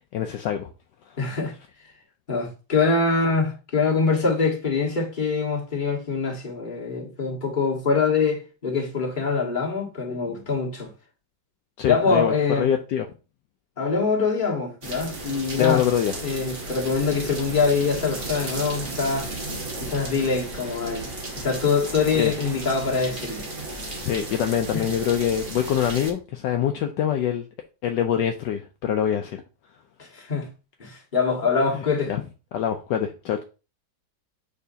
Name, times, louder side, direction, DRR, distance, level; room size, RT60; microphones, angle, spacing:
voice 1, 0.1-0.7 11.8-13.1 15.6-16.2 22.1-22.3 24.0-27.5 27.8-29.4 31.7-32.2 32.5-33.4, left 9 dB, 75° left, 1.2 m, -24 dB
voice 2, 1.2-1.5 2.3-10.9 11.9-12.7 13.8-15.9 16.2-19.3 19.8-23.5 24.7-24.8 30.0-30.5 30.8-32.2, left 4 dB, 25° left, 1.6 m, -24 dB
sound 1, 14.8-26.1, right 2 dB, 35° right, 1.4 m, -34 dB
6.7 x 5.1 x 2.7 m
omnidirectional pair, 2.1 m